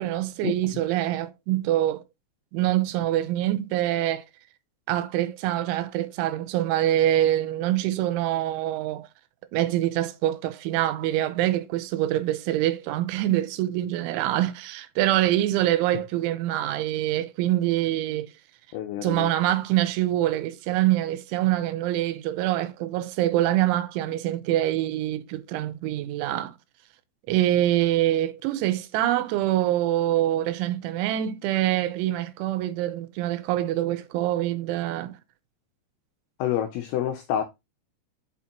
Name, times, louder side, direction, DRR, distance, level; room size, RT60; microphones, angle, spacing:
voice 1, 0.0-2.0 2.5-4.2 4.9-9.1 9.5-18.3 19.0-26.6 27.3-35.2, right 13 dB, 85° right, 3.1 m, -25 dB
voice 2, 18.7-19.3 36.4-37.4, left 11 dB, 85° left, 2.2 m, -28 dB
6.8 x 5.8 x 2.9 m
omnidirectional pair, 5.5 m